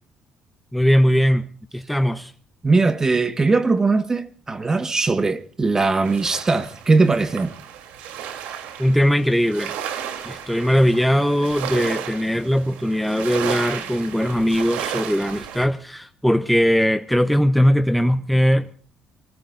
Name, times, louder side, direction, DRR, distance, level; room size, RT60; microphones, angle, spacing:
voice 1, 0.7-2.3 8.8-9.7 10.2-18.7, equal, ahead, 0.9 m, -20 dB
voice 2, 2.6-7.5, right 3 dB, 25° right, 1.5 m, -20 dB
sound 1, 6.0-15.7, right 9 dB, 85° right, 3.2 m, -33 dB
27.0 x 20.5 x 2.6 m
cardioid pair, 85°, 2 cm